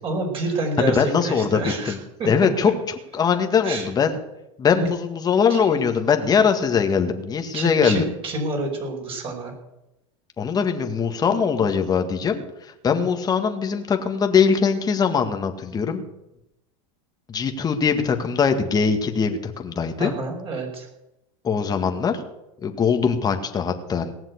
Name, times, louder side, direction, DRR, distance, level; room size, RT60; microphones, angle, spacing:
voice 1, 0.0-2.3 3.6-3.9 4.7-4.9 5.5-5.6 7.5-9.5 20.0-20.9, right 3 dB, 35° right, 1 dB, 5.0 m, -28 dB
voice 2, 0.8-2.0 2.3-2.7 3.1-4.1 4.6-8.0 10.4-12.4 12.8-16.0 17.3-20.1 21.4-22.2 22.6-24.1, left 6 dB, 25° left, 5 dB, 1.9 m, -21 dB
18.5 x 7.4 x 8.1 m, 0.91 s
supercardioid pair, 120°, 16 cm